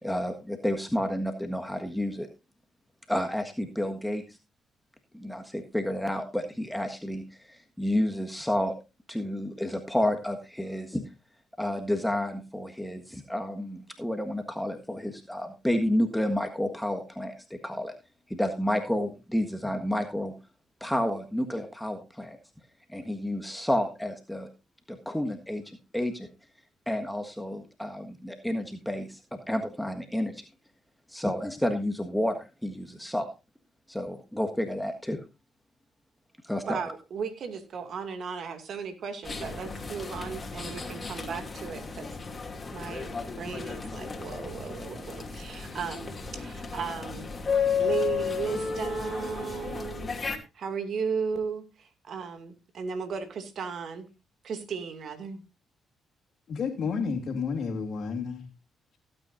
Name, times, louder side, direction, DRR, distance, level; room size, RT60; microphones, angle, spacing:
voice 1, 0.0-2.3 3.1-4.4 5.1-8.7 9.1-11.0 11.6-17.9 18.3-20.3 20.8-22.4 22.9-24.5 24.9-26.3 26.9-30.4 31.1-33.3 33.9-35.2 36.4-36.8, left 1 dB, 5° left, 1.6 m, -30 dB
voice 2, 36.7-42.1 42.7-47.3 47.8-50.1 50.5-54.1 54.4-55.4, right 6 dB, 60° right, 2.3 m, -35 dB
sound 1, 39.2-50.4, left 5 dB, 35° left, 2.5 m, -33 dB
voice 3, 56.5-58.5, left 5 dB, 60° left, 2.5 m, -31 dB
17.0 x 8.9 x 2.6 m
hypercardioid pair, 50°, 0 cm